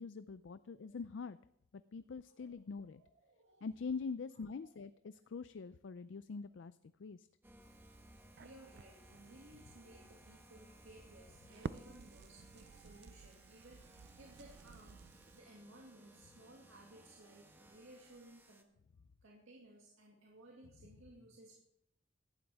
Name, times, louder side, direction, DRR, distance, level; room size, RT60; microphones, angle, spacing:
voice 1, 0.0-1.4 1.7-3.0 3.6-7.3, left 5 dB, 70° left, 13 dB, 0.4 m, -44 dB
voice 2, 2.9-3.7 4.6-4.8 6.4-6.5 8.4-18.7 19.2-21.6, right 1 dB, 85° right, -2 dB, 2.2 m, -59 dB
sound 1, 7.4-18.6, right 1 dB, 10° right, 1.1 m, -61 dB
Crackle, 7.6-15.4, right 5 dB, 55° right, 0.4 m, -53 dB
17.5 x 12.0 x 3.5 m, 0.77 s
head